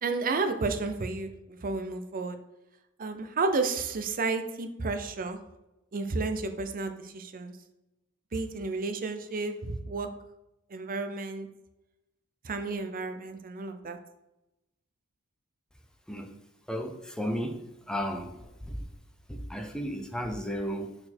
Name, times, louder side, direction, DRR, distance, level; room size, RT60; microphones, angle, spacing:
voice 1, 0.0-2.4 3.0-5.4 5.9-7.6 8.3-10.1 10.7-11.5 12.4-14.0, right 3 dB, 40° right, 8 dB, 0.6 m, -32 dB
voice 2, 16.7-17.6 17.9-18.3 18.7-18.8 19.3-20.9, equal, 5° left, 4 dB, 0.6 m, -33 dB
6.5 x 4.4 x 4.3 m, 0.92 s
head